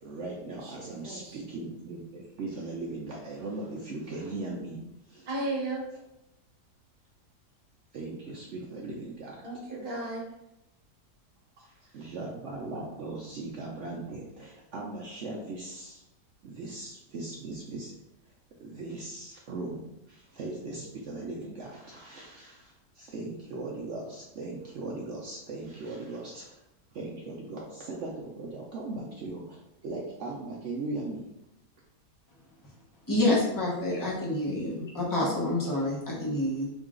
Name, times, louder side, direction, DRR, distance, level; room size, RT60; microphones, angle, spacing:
voice 1, 0.0-4.8 5.1-5.3 7.9-9.4 11.6-16.0 16.4-17.9 18.6-19.8 20.1-26.6 26.9-31.3, right 2 dB, 70° right, -3 dB, 0.7 m, -39 dB
voice 2, 0.6-1.4 5.3-5.8 9.4-10.2 11.8-11.9, right 2 dB, 35° right, -4 dB, 1.2 m, -35 dB
voice 3, 33.1-36.7, left 1 dB, 15° left, -5 dB, 0.6 m, -28 dB
3.7 x 2.4 x 3.6 m, 0.89 s
omnidirectional pair, 1.8 m